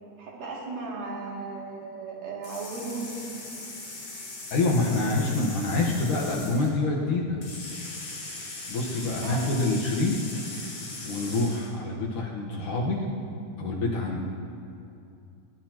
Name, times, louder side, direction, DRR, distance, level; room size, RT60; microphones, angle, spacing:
voice 1, 0.2-3.3 9.2-9.6, right 3 dB, 50° right, -4 dB, 3.9 m, -36 dB
sound 1, 2.4-6.7 7.4-11.7, left 2 dB, 45° left, 6.4 m, -39 dB
voice 2, 4.5-7.4 8.7-10.5 11.0-13.1 13.6-14.2, left 2 dB, 70° left, -3 dB, 2.0 m, -26 dB
21.5 x 18.0 x 3.0 m, 2.5 s
omnidirectional pair, 5.5 m